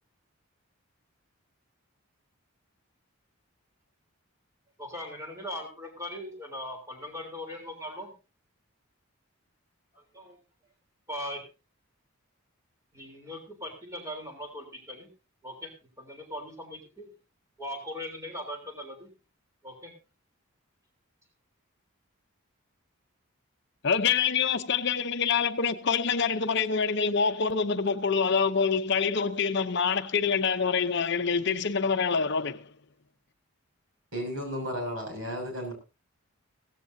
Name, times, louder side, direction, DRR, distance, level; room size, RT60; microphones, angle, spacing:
voice 1, 4.8-8.1 9.9-10.4 11.1-11.4 12.9-15.1 15.4-17.1 17.6-19.1 19.6-19.9, left 1 dB, 15° right, 3.5 m, -39 dB
voice 2, 23.8-32.7, left 6 dB, 55° left, 0.7 m, -26 dB
voice 3, 34.1-35.7, equal, 70° right, 6.5 m, -33 dB
16.5 x 15.0 x 2.7 m
head